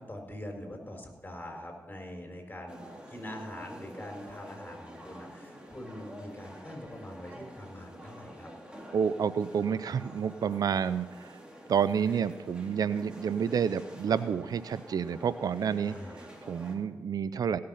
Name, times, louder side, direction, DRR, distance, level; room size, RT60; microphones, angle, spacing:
voice 1, 0.0-8.5 15.8-16.3, left 1 dB, 25° left, 2 dB, 4.5 m, -43 dB
sound 1, 2.7-16.8, equal, 15° right, 3.1 m, -48 dB
voice 2, 8.9-11.4 11.7-17.6, right 7 dB, 75° right, 15 dB, 0.5 m, -29 dB
17.5 x 6.6 x 5.6 m, 1.2 s
supercardioid pair, 40°, 7 cm